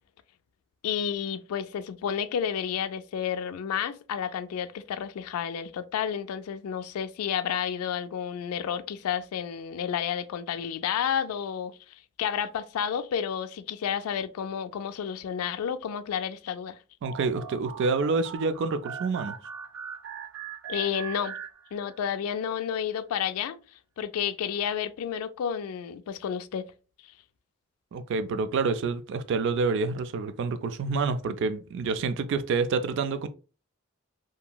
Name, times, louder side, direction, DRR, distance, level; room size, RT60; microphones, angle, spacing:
voice 1, 0.8-11.7 12.2-16.8 20.7-21.3 21.7-23.6 24.0-26.7, left 8 dB, 90° left, 0.3 m, -31 dB
voice 2, 17.0-19.3 27.9-33.3, right 4 dB, 60° right, 0.3 m, -28 dB
sound 1, 17.0-22.1, right 7 dB, 75° right, 0.9 m, -41 dB
2.9 x 2.6 x 2.2 m
head